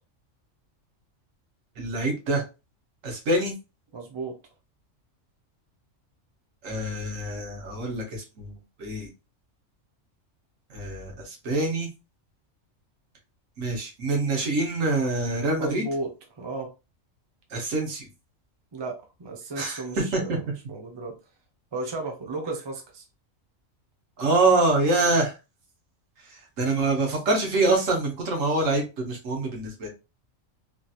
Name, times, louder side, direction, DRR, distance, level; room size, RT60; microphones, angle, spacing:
voice 1, 1.8-2.4 3.0-3.5 6.6-9.1 10.7-11.9 13.6-15.9 17.5-18.1 19.6-20.4 24.2-25.4 26.2-29.9, right 2 dB, 85° right, 1 dB, 1.4 m, -25 dB
voice 2, 3.9-4.4 15.6-16.1 16.4-16.7 18.7-21.2 21.7-23.0, right 3 dB, 25° right, 2 dB, 0.6 m, -34 dB
3.1 x 2.8 x 2.3 m, 0.28 s
omnidirectional pair, 1.3 m